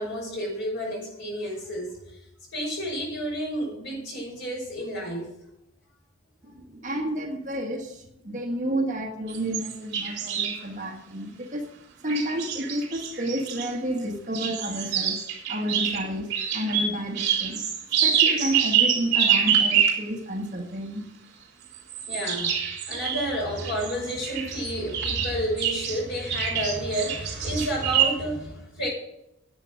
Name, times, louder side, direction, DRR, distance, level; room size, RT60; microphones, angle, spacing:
voice 1, 0.0-2.2 2.5-5.3 22.1-22.5 22.9-28.9, equal, 50° left, -2 dB, 5.8 m, -30 dB
voice 2, 6.4-11.7 12.0-17.7 18.0-21.0, equal, 35° right, 2 dB, 1.4 m, -31 dB
sound 1, 9.3-10.6 12.1-13.7 14.3-20.1 21.7-26.0 26.3-28.1, right 8 dB, 50° right, 3.7 m, -26 dB
10.5 x 8.3 x 6.3 m, 0.83 s
head